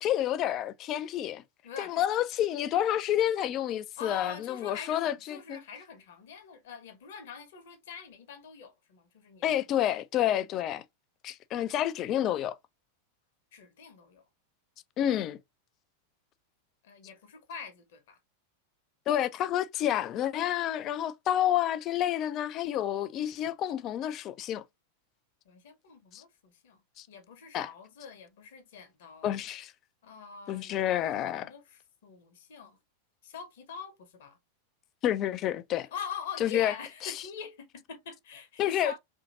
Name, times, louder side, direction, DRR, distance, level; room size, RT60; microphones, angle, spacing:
voice 1, 0.0-1.4 1.8-5.6 9.4-10.8 11.2-12.6 15.0-15.4 19.1-24.6 26.1-26.2 27.0-27.1 27.5-27.7 29.2-29.7 30.5-31.5 35.0-35.9 36.4-36.7 37.0-37.1 38.6-39.0, left 11 dB, 35° left, 0.3 m, -29 dB
voice 2, 1.6-2.0 4.0-9.7 13.5-14.2 16.8-18.2 25.4-26.8 27.1-29.3 30.0-32.8 33.2-34.4 35.9-39.0, left 6 dB, 55° left, 0.9 m, -44 dB
2.8 x 2.7 x 2.5 m
figure-of-eight pair, 90°, 0 cm